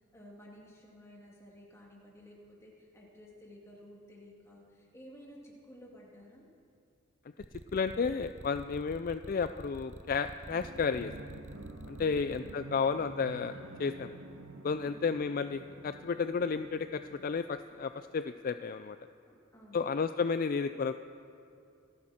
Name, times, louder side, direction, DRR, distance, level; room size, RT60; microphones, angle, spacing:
voice 1, 0.1-6.5 14.8-15.0 19.3-19.9, equal, 15° left, -3 dB, 2.4 m, -54 dB
sound 1, 7.4-12.5, right 2 dB, 35° right, 0.5 m, -47 dB
voice 2, 7.7-11.1 11.9-14.1 14.6-19.0 19.7-20.9, left 5 dB, 45° left, 10 dB, 0.3 m, -32 dB
sound 2, 10.5-18.0, right 2 dB, 75° right, 1.3 m, -49 dB
26.0 x 10.5 x 4.3 m, 2.6 s
head